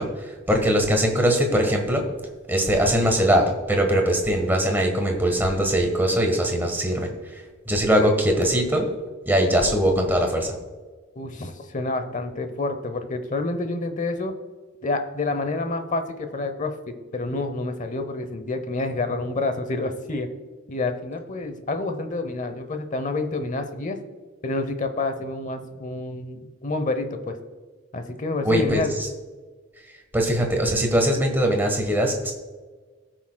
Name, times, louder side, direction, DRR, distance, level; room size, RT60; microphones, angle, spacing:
voice 1, 0.0-2.1 2.5-7.4 7.7-8.9 9.3-10.6 28.4-29.1 30.1-32.3, equal, 10° right, 2 dB, 1.3 m, -21 dB
voice 2, 11.1-14.3 14.8-20.3 20.7-24.0 24.4-27.3 27.9-28.9, left 2 dB, 35° left, 8 dB, 0.8 m, -28 dB
17.5 x 6.0 x 2.3 m, 1.4 s
head